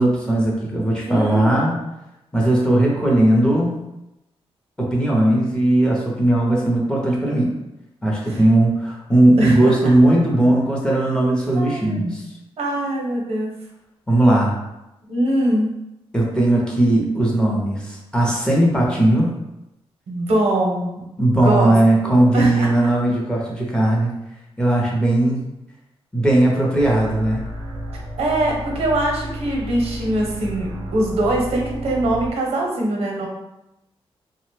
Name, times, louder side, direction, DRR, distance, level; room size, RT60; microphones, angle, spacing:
voice 1, 0.0-1.8 2.3-3.8 4.8-7.5 8.0-12.3 14.1-14.5 16.1-19.3 21.2-24.1 24.6-25.5 26.1-27.4, right 1 dB, 10° left, -4 dB, 0.5 m, -18 dB
voice 2, 1.0-1.6 8.3-8.4 9.4-9.6 11.6-12.0 12.6-13.5 15.1-15.7 20.1-21.1 21.3-21.8 22.1-22.7 28.2-33.3, right 1 dB, 85° right, -1 dB, 0.7 m, -22 dB
sound 1, 26.8-32.3, equal, 45° right, 0.4 m, -32 dB
2.8 x 2.0 x 3.1 m, 0.91 s
wide cardioid pair, 170°, 10 cm